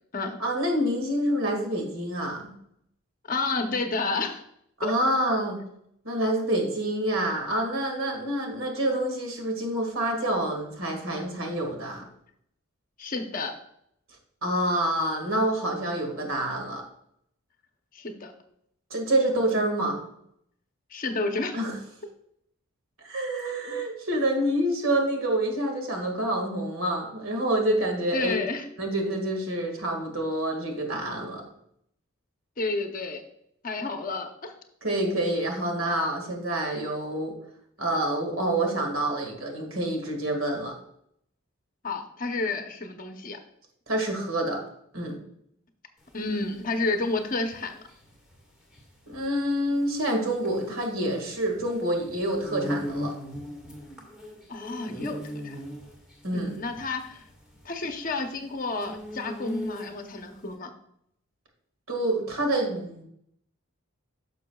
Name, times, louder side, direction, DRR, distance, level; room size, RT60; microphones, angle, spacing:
voice 1, 0.4-2.5 4.8-5.6 6.0-12.0 14.4-16.8 18.9-20.0 21.5-21.8 23.0-28.4 28.8-31.4 34.8-37.4 37.8-40.7 43.9-44.6 44.9-45.2 49.1-53.1 56.2-56.6 61.9-63.0, right 1 dB, 70° right, 2 dB, 1.9 m, -27 dB
voice 2, 3.3-4.4 4.8-4.9 13.0-13.6 17.9-18.3 20.9-21.6 28.1-28.7 32.6-33.2 33.6-34.5 41.8-43.4 46.1-47.8 54.5-55.6 56.3-57.2 57.6-60.7, left 3 dB, 40° left, 5 dB, 0.8 m, -30 dB
sound 1, 46.0-60.2, left 1 dB, 5° right, 1.8 m, -39 dB
10.5 x 6.6 x 2.3 m, 0.71 s
head